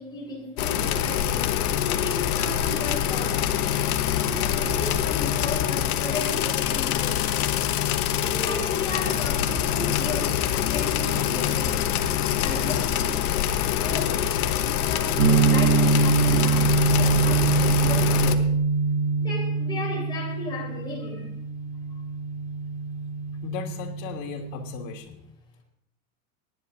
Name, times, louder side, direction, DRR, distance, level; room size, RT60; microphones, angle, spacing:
voice 1, 0.0-3.4 4.0-7.6 8.2-11.8 12.4-14.3 14.6-18.4 19.2-21.3, left 2 dB, 10° left, -5 dB, 4.6 m, -36 dB
sound 1, 0.6-18.4, left 10 dB, 85° left, 1.2 m, -25 dB
sound 2, 15.2-25.0, right 4 dB, 80° right, 3.7 m, -24 dB
voice 2, 23.4-25.2, left 7 dB, 60° left, 1 dB, 3.0 m, -36 dB
22.0 x 10.5 x 2.7 m, 0.76 s
supercardioid pair, 140°, 43 cm